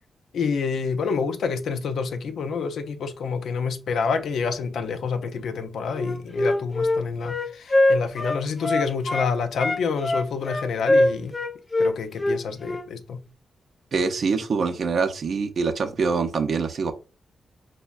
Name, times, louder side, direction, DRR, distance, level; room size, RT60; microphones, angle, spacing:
voice 1, 0.3-11.4 11.8-13.2, left 5 dB, 75° left, 0.4 m, -28 dB
Wind instrument woodwind instrument, 5.9-9.3 9.6-12.9, left 1 dB, 20° left, 0.6 m, -23 dB
voice 2, 13.9-16.9, right 4 dB, 50° right, 0.5 m, -24 dB
5.2 x 2.1 x 2.3 m
wide cardioid pair, 160°, 0 cm